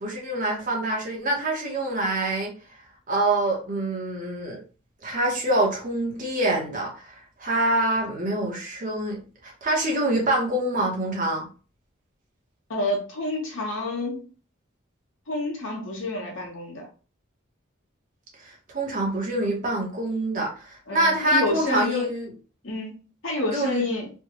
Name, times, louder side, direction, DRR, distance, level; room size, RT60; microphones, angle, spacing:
voice 1, 0.0-2.5 3.1-4.6 5.0-7.1 7.4-11.5 18.7-22.3 23.5-23.8, right 1 dB, 40° right, -1 dB, 1.0 m, -25 dB
voice 2, 12.7-14.2 15.3-16.9 20.9-22.1 22.6-24.1, left 2 dB, 70° left, 0 dB, 1.2 m, -29 dB
3.4 x 2.2 x 3.0 m, 0.36 s
head